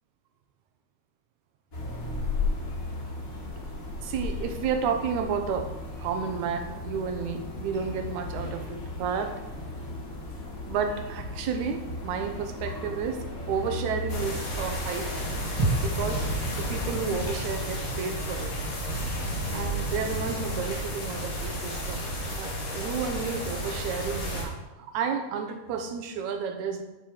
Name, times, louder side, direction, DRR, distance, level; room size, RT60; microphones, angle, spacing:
sound 1, 1.7-16.9, left 2 dB, 35° left, 1.6 m, -36 dB
voice 1, 4.0-5.7 6.0-9.4 10.7-15.1 15.8-16.3 16.6-18.5 19.5-22.1 22.4-26.8, right 6 dB, 90° right, 6 dB, 2.2 m, -31 dB
sound 2, 14.1-24.4, equal, 70° left, 3.4 m, -32 dB
sound 3, 15.6-19.5 19.8-19.9, right 2 dB, 45° right, 1.2 m, -34 dB
11.5 x 4.5 x 4.9 m, 1.1 s
omnidirectional pair, 3.3 m